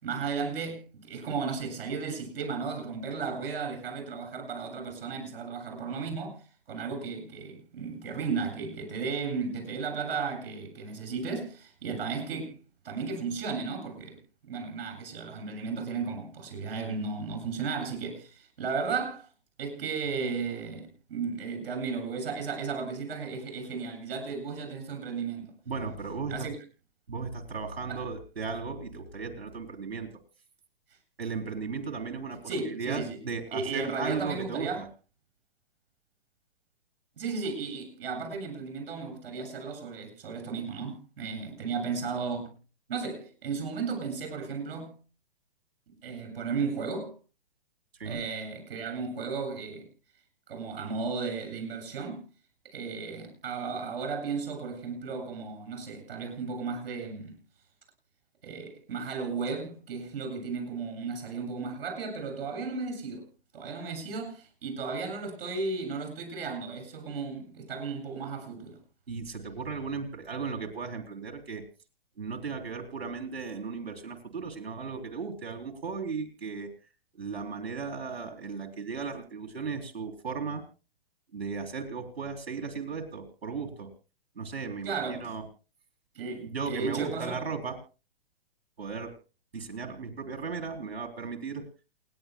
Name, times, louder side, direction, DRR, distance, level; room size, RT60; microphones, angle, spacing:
voice 1, 0.0-12.6 12.8-14.2 14.5-19.3 19.6-25.5 26.3-26.6 27.9-28.0 32.5-33.2 33.5-34.8 37.2-42.5 42.9-45.0 46.0-47.1 48.0-49.8 50.5-52.2 52.6-57.4 58.4-63.3 63.5-68.8 84.8-85.3 86.1-87.4, right 5 dB, 70° right, 7.9 m, -34 dB
voice 2, 25.7-26.3 27.1-30.1 31.2-34.9 48.0-48.2 69.1-71.6 72.2-76.7 77.2-80.6 81.3-83.9 84.4-85.4 86.5-87.8 88.8-89.1 89.5-91.6, right 5 dB, 90° right, 3.9 m, -36 dB
28.5 x 11.5 x 2.3 m
hypercardioid pair, 130°, 30 cm